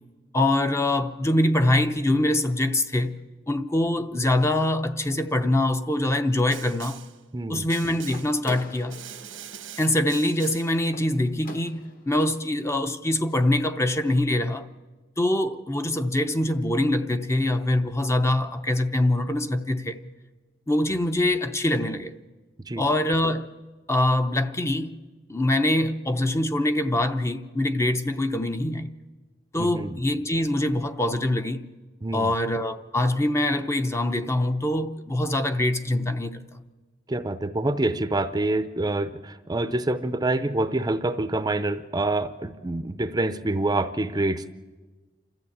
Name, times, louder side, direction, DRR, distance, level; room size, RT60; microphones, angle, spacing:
voice 1, 0.3-3.1 3.5-7.0 7.5-9.0 9.8-14.7 15.2-20.0 20.7-22.2 22.8-23.5 23.9-25.0 25.3-28.9 29.5-31.7 32.1-36.6, left 1 dB, 15° left, 0.7 m, -24 dB
Snare drum, 6.5-7.2 7.7-8.4 8.9-10.8, right 10 dB, 90° right, 1.4 m, -42 dB
voice 2, 7.3-7.7 22.6-22.9 29.6-30.0 32.0-32.3 37.1-44.5, right 2 dB, 20° right, 0.6 m, -26 dB
sound 1, 8.1-12.2, left 2 dB, 50° left, 1.5 m, -44 dB
27.5 x 13.5 x 8.6 m
head